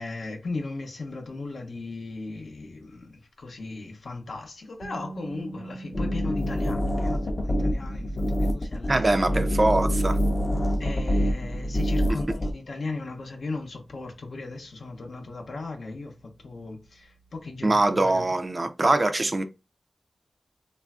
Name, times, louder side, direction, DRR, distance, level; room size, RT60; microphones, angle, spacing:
voice 1, 0.0-9.4 10.8-16.1 16.4-18.3, left 3 dB, 80° left, 0.7 m, -37 dB
sound 1, 4.8-16.7, right 3 dB, 85° right, 1.0 m, -47 dB
sound 2, 5.9-12.5, equal, 35° left, 0.5 m, -26 dB
voice 2, 8.9-10.2 17.6-19.4, right 2 dB, 40° right, 0.4 m, -23 dB
3.2 x 2.4 x 2.3 m
wide cardioid pair, 65°, 0 cm